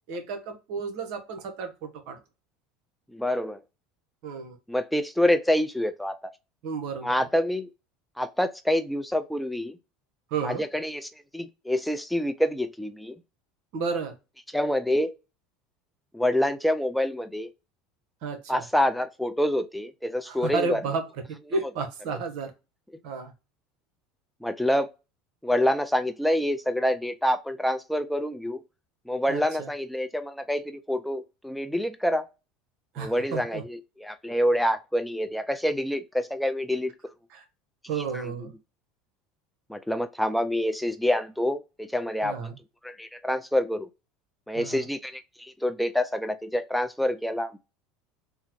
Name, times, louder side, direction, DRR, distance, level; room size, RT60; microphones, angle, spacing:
voice 1, 0.1-2.2 4.2-4.6 6.6-7.3 10.3-10.6 13.7-14.1 18.2-18.6 20.3-21.0 21.5-22.5 23.0-23.3 29.3-29.7 32.9-33.6 37.3-37.4 37.9-38.5 42.2-42.5 44.5-44.8, right 4 dB, 65° right, 0.9 m, -32 dB
voice 2, 3.1-3.6 4.7-6.2 7.0-7.7 8.2-9.8 10.4-13.2 14.5-15.1 16.1-17.5 18.5-20.8 24.4-24.9 25.4-28.6 29.1-32.3 33.0-36.9 38.1-38.3 39.7-42.5 42.8-43.9 44.5-47.6, left 1 dB, ahead, 0.3 m, -27 dB
3.6 x 2.1 x 2.9 m
hypercardioid pair, 85°, 0 cm